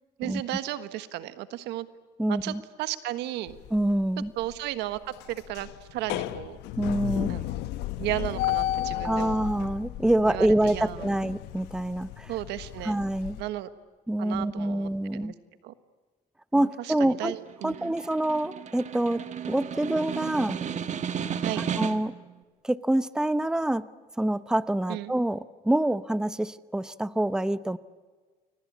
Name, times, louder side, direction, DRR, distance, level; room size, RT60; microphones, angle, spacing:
voice 1, 0.2-1.9 2.3-3.6 4.4-5.0 5.3-6.6 7.3-7.5 8.0-9.3 10.2-11.0 12.3-13.0 13.4-13.7 14.2-15.3 15.6-15.7 16.5-17.9 21.4-21.6 24.9-25.1, right 14 dB, 90° right, 13 dB, 1.5 m, -34 dB
voice 2, 2.2-2.6 3.7-4.3 6.8-7.3 9.0-12.3 12.8-13.4 14.1-15.3 16.5-17.3 17.6-20.6 21.8-22.1 22.6-23.9 24.2-27.8, right 1 dB, 5° right, 15 dB, 0.8 m, -26 dB
sound 1, 3.5-4.0 4.4-4.6 4.9-13.4, left 14 dB, 90° left, 1.1 m, -33 dB
Snare drum, 17.3-22.2, right 8 dB, 45° right, 1.6 m, -34 dB
29.5 x 23.0 x 8.5 m, 1.4 s
cardioid pair, 110°, 17 cm